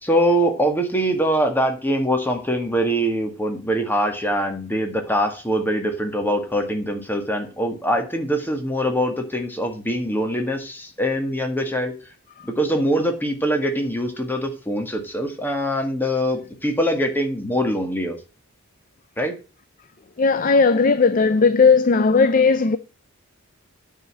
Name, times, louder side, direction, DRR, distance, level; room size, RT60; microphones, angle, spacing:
voice 1, 0.0-11.9 12.4-18.2 19.2-19.3, equal, 10° left, 1.8 m, -23 dB
voice 2, 20.2-22.8, left 4 dB, 40° left, 0.5 m, -16 dB
9.2 x 5.0 x 7.4 m
head